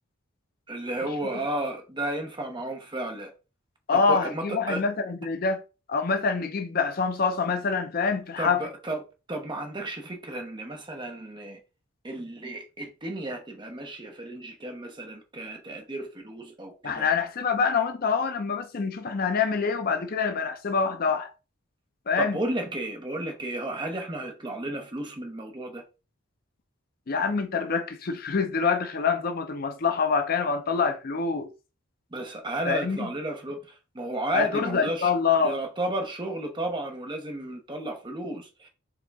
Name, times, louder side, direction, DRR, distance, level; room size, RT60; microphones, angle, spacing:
voice 1, 0.7-3.3 3.9-4.8 8.4-11.6 12.0-17.1 22.2-25.8 32.1-35.1 35.4-38.7, right 1 dB, 20° right, 0.8 m, -33 dB
voice 2, 3.9-5.6 5.9-8.6 16.8-21.3 22.1-22.4 27.1-31.5 32.6-33.0 34.3-35.6, left 5 dB, 45° left, 0.5 m, -25 dB
4.7 x 2.9 x 3.5 m
head